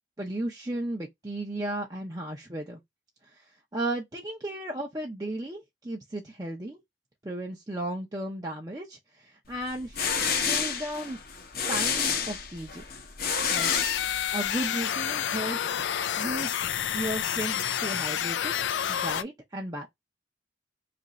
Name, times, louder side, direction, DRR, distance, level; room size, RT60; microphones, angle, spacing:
voice 1, 0.2-2.8 3.7-6.8 7.2-9.0 9.2-11.2 11.7-12.8 13.5-15.8 16.2-16.5 16.9-18.5 18.9-19.9, right 1 dB, 20° right, 0.6 m, -35 dB
sound 1, 9.7-14.6, left 6 dB, 55° left, 0.9 m, -29 dB
sound 2, 13.5-19.2, left 9 dB, 90° left, 0.4 m, -29 dB
2.9 x 2.5 x 4.0 m
head